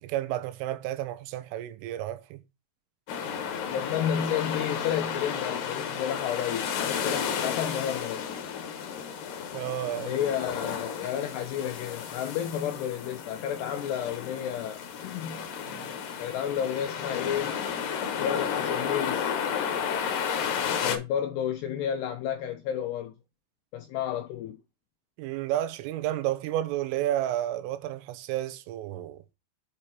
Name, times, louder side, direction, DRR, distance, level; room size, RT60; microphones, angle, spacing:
voice 1, 0.0-2.4 9.5-10.2 25.2-29.2, right 13 dB, 85° right, 3.4 m, -31 dB
sound 1, 3.1-21.0, left 7 dB, 65° left, 2.3 m, -32 dB
voice 2, 3.7-8.3 10.0-15.4 16.2-17.6 18.2-19.3 20.8-23.1 23.7-24.6, left 9 dB, 80° left, 2.4 m, -31 dB
8.6 x 4.9 x 4.3 m
omnidirectional pair, 5.8 m